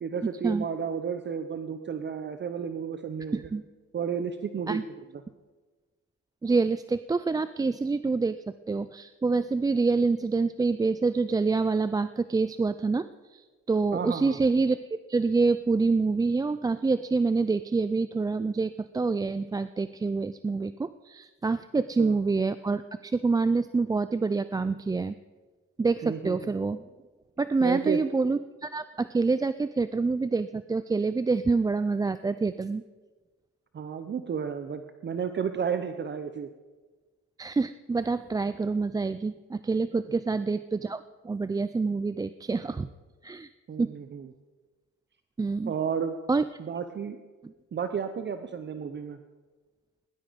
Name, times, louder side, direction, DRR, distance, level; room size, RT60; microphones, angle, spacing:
voice 1, 0.0-3.4 3.9-4.8 13.9-14.4 22.0-22.1 26.0-26.5 27.6-28.0 33.7-36.5 43.7-44.3 45.7-46.2 46.6-47.2 47.7-49.2, right 7 dB, 35° right, 9 dB, 0.8 m, -32 dB
voice 2, 3.3-3.6 4.7-4.8 6.4-25.1 25.8-26.8 27.4-32.8 37.4-42.9 43.2-43.5 43.8-43.9 45.4-45.7 46.3-46.4, right 4 dB, 15° right, 13 dB, 0.3 m, -27 dB
18.0 x 11.0 x 5.2 m, 1.3 s
cardioid pair, 90°, 30 cm